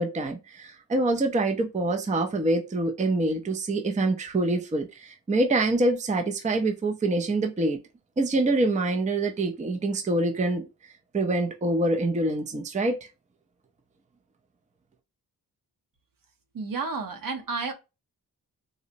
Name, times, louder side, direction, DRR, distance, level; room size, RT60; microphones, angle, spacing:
voice 1, 0.0-7.8 8.2-10.6 11.1-13.1, right 2 dB, 20° right, 0.4 m, -25 dB
voice 2, 16.5-17.7, right 4 dB, 65° right, 0.9 m, -31 dB
3.8 x 2.0 x 2.5 m
wide cardioid pair, 125°, 36 cm